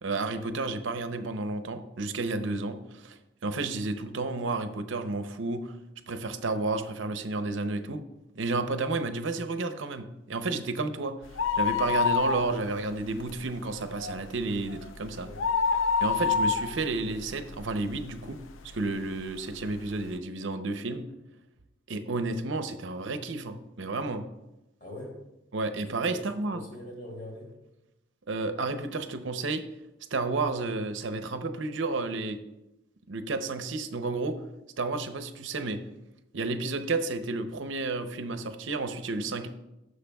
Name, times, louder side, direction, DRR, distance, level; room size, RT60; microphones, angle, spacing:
voice 1, 0.0-5.8 6.1-8.0 8.4-11.2 11.5-15.3 16.0-18.4 18.7-21.1 21.9-24.2 25.5-26.6 28.3-29.6 30.1-32.4 33.1-34.4 34.8-35.8 36.3-39.5, right 3 dB, 80° right, 9 dB, 0.7 m, -31 dB
sound 1, 11.2-12.9 13.2-13.3 13.8-18.2 18.7-18.8 19.6-19.7 19.9-20.0, left 5 dB, 90° left, 0.5 m, -27 dB
voice 2, 24.8-25.2 26.1-27.5, left 1 dB, 45° left, -2 dB, 2.7 m, -43 dB
15.5 x 6.5 x 2.3 m, 0.93 s
head